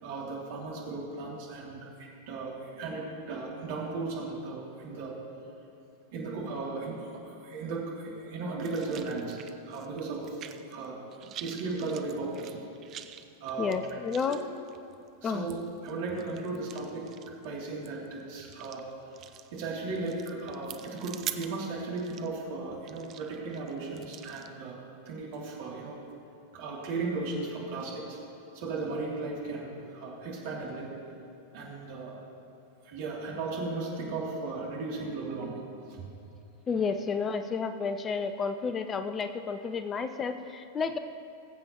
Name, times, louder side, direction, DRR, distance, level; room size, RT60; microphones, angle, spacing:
voice 1, 0.0-5.1 6.1-9.4 9.7-10.4 10.7-11.0 11.4-12.6 13.4-13.8 15.2-17.1 17.4-18.8 19.5-24.8 25.1-26.0 26.5-28.2 28.5-30.9 31.5-32.2 32.8-35.6 35.9-36.0, right 3 dB, 50° right, -4 dB, 2.7 m, -36 dB
sound 1, 8.6-10.9 11.1-24.5, right 11 dB, 35° right, 0.5 m, -46 dB
voice 2, 13.6-14.4 15.2-15.5 36.7-41.0, left 5 dB, 25° left, 9 dB, 0.4 m, -31 dB
21.0 x 7.7 x 2.9 m, 2.6 s
figure-of-eight pair, 90°, 0 cm